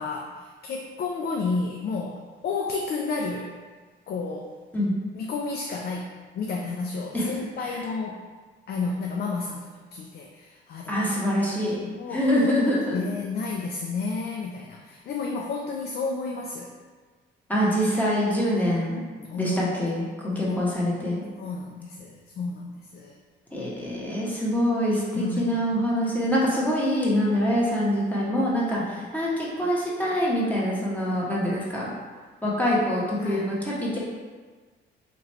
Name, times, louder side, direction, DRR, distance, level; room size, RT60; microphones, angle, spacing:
voice 1, 0.0-3.5 4.1-4.5 5.1-8.3 8.7-11.0 11.8-12.3 12.9-16.7 19.2-19.6 20.3-20.7 21.4-23.2 25.1-25.6 28.8-29.1 33.2-33.6, left 4 dB, 55° left, 1 dB, 0.4 m, -31 dB
voice 2, 10.9-11.8 12.1-13.0 17.5-19.0 19.4-21.2 23.5-31.9 32.4-34.0, equal, 10° left, -6 dB, 1.1 m, -25 dB
3.0 x 2.5 x 4.3 m, 1.4 s
cardioid pair, 90°, 20 cm